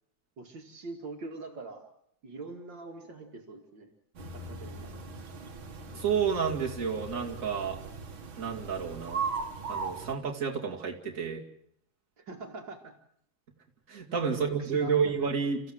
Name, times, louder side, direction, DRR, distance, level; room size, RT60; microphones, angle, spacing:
voice 1, 0.4-1.8 2.2-3.9 4.3-5.1 12.2-12.9 14.2-14.3 14.6-14.9, right 3 dB, 65° right, 3 dB, 2.9 m, -43 dB
sound 1, 4.2-10.1, right 4 dB, 85° right, 2.7 m, -38 dB
voice 2, 5.9-7.8 8.4-9.2 9.7-11.4 13.9-15.6, right 6 dB, 40° right, -1 dB, 3.0 m, -30 dB
29.5 x 15.0 x 7.9 m, 0.72 s
omnidirectional pair, 2.1 m